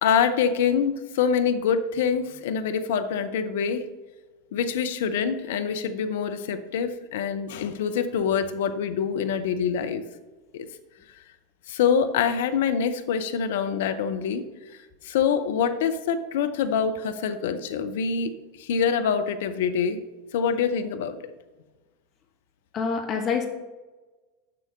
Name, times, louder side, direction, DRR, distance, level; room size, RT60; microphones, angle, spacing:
voice 1, 0.0-3.9 4.5-10.0 10.5-10.7 11.7-14.5 15.0-18.3 18.6-20.0 20.3-21.2, left 7 dB, 60° left, 9 dB, 0.7 m, -25 dB
voice 2, 22.7-23.5, left 5 dB, 35° left, 5 dB, 1.1 m, -26 dB
7.6 x 6.3 x 5.3 m, 1.2 s
figure-of-eight pair, 80°, 0 cm